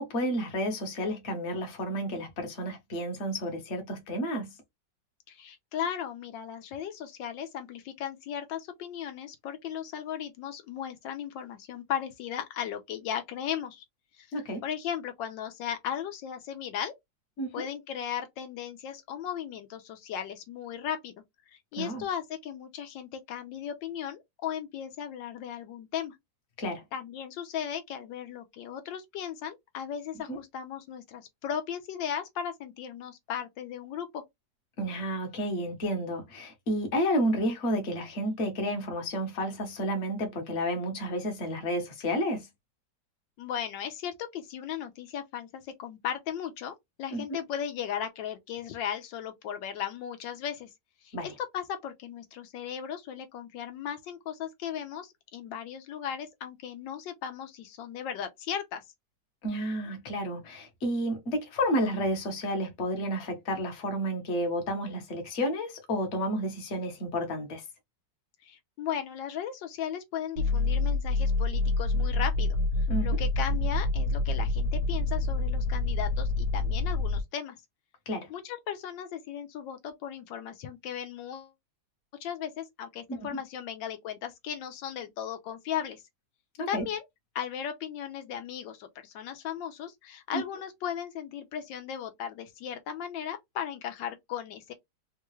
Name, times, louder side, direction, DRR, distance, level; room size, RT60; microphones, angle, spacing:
voice 1, 0.0-4.6 14.3-14.6 17.4-17.7 21.8-22.0 26.6-26.8 30.3-30.4 34.8-42.5 47.1-47.4 51.1-51.3 59.4-67.6 72.9-73.2 78.1-78.3 83.1-83.3 86.6-86.8 90.3-90.4, equal, 45° left, 1.1 m, -31 dB
voice 2, 5.3-13.8 14.2-16.9 17.5-21.1 21.5-26.1 26.9-34.2 43.4-50.7 51.0-58.8 68.4-72.6 73.0-77.6 78.3-81.5 82.2-86.0 86.7-87.0 87.3-94.7, left 9 dB, 85° left, 1.4 m, -36 dB
sound 1, 70.4-77.2, left 2 dB, 60° right, 0.9 m, -27 dB
3.6 x 2.3 x 3.0 m
omnidirectional pair, 2.0 m